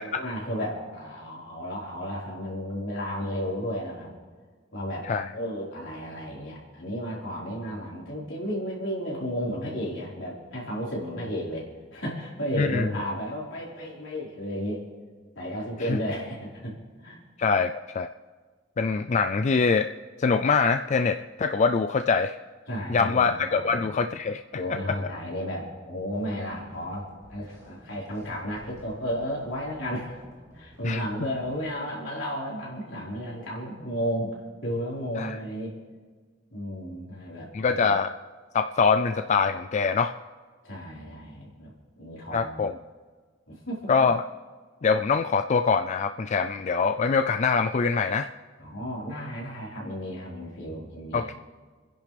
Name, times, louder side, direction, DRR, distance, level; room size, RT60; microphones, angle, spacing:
voice 1, 0.0-4.1 4.7-14.8 15.3-16.8 17.0-17.2 22.7-23.9 24.5-30.2 30.5-34.4 34.6-35.8 36.5-37.9 40.6-41.7 42.0-42.7 43.5-43.9 48.6-51.3, equal, 70° left, -5 dB, 4.4 m, -33 dB
voice 2, 17.4-18.1 18.8-19.9 20.2-22.4 22.9-24.4 30.8-31.0 35.2-35.4 37.5-38.1 38.5-40.1 42.3-42.7 43.9-44.2 44.8-48.3 51.1-51.3, left 5 dB, 35° left, 8 dB, 0.3 m, -24 dB
sound 1, 26.1-31.7, right 1 dB, 20° right, 2.9 m, -53 dB
29.0 x 10.5 x 3.4 m, 1.5 s
head